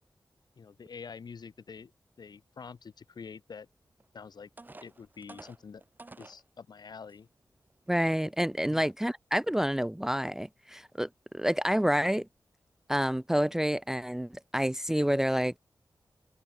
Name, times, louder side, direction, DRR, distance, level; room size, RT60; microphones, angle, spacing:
voice 1, 0.6-1.9 2.2-3.7 4.1-4.5 4.8-5.8 6.2-7.3 8.7-8.9, left 5 dB, 75° left, 4.6 m, -46 dB
sound 1, 4.0-4.1 4.6-6.4 7.1-7.2 7.7-7.9, right 2 dB, 25° right, 1.9 m, -50 dB
voice 2, 7.9-11.1 11.3-12.3 12.9-15.5, equal, 5° right, 0.5 m, -28 dB
wide cardioid pair, 115°, 7 cm